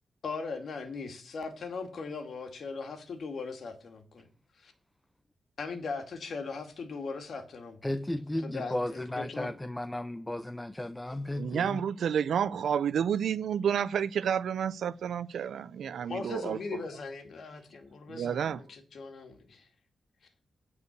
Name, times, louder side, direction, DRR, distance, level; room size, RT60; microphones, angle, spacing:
voice 1, 0.2-4.3 4.6-4.7 5.6-7.9 8.4-9.5 16.1-19.7, left 4 dB, 65° left, 2.3 m, -39 dB
voice 2, 7.8-11.8, left 1 dB, 10° left, 0.5 m, -34 dB
voice 3, 11.4-16.6 18.1-18.6, right 8 dB, 85° right, 0.6 m, -30 dB
9.6 x 4.8 x 6.6 m
cardioid pair, 85°, 0 cm